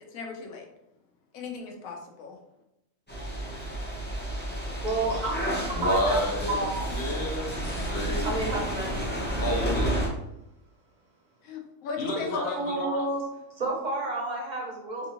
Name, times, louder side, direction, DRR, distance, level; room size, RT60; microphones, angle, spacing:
voice 1, 0.1-0.7 1.3-2.4 11.4-12.6, left 4 dB, 80° left, 2 dB, 1.1 m, -36 dB
sound 1, 3.1-10.1, right 1 dB, 15° left, 0.4 m, -31 dB
voice 2, 4.8-6.2 6.5-6.9 8.2-9.0 12.5-13.2 13.6-15.1, right 2 dB, 45° right, -2 dB, 0.6 m, -30 dB
voice 3, 5.7-8.8 9.4-10.0 12.0-13.0, equal, 55° left, -2 dB, 0.9 m, -30 dB
3.5 x 2.5 x 2.9 m, 0.90 s
omnidirectional pair, 1.4 m